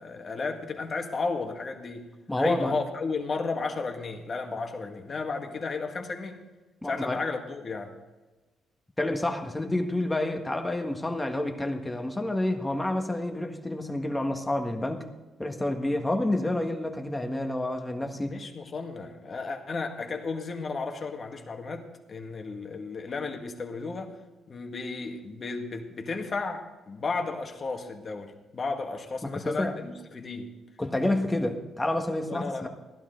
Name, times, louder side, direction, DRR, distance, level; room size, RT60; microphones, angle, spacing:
voice 1, 0.0-2.1 2.4-6.4 6.8-8.0 18.2-24.2 24.5-30.5 32.2-32.7, left 4 dB, 40° left, 3 dB, 1.9 m, -33 dB
voice 2, 2.3-2.8 6.8-7.2 9.0-15.0 15.4-18.4 29.3-29.8 30.8-32.7, left 1 dB, 15° left, 4 dB, 1.7 m, -29 dB
15.5 x 11.5 x 3.9 m, 1.2 s
cardioid pair, 90°, 0 cm